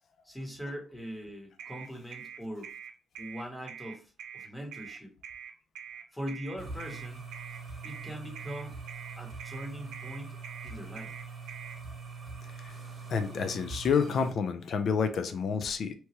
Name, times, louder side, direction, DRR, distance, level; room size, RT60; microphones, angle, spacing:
voice 1, 0.2-2.7 3.2-5.1 6.1-7.2 7.8-8.8 9.2-10.4 10.6-11.1, equal, 5° left, 1 dB, 1.0 m, -41 dB
sound 1, 1.6-11.8, right 8 dB, 90° right, 0.4 m, -45 dB
sound 2, 6.6-14.3, right 4 dB, 35° right, 1.0 m, -43 dB
voice 2, 13.1-15.9, left 6 dB, 60° left, 9 dB, 0.5 m, -29 dB
2.9 x 2.2 x 2.9 m, 0.37 s
cardioid pair, 90°, 0 cm